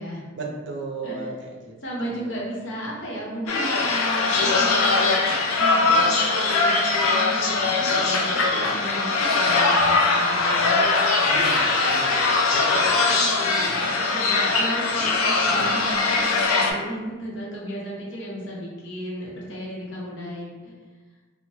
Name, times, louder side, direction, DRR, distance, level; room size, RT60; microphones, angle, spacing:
voice 1, 0.3-2.4 11.2-12.6, right 3 dB, 55° right, -1 dB, 0.4 m, -35 dB
voice 2, 1.8-10.9 12.9-20.7, equal, 60° left, -5 dB, 0.7 m, -34 dB
sound 1, 3.5-16.7, left 3 dB, 90° left, 0.4 m, -21 dB
3.0 x 2.1 x 2.7 m, 1.3 s
head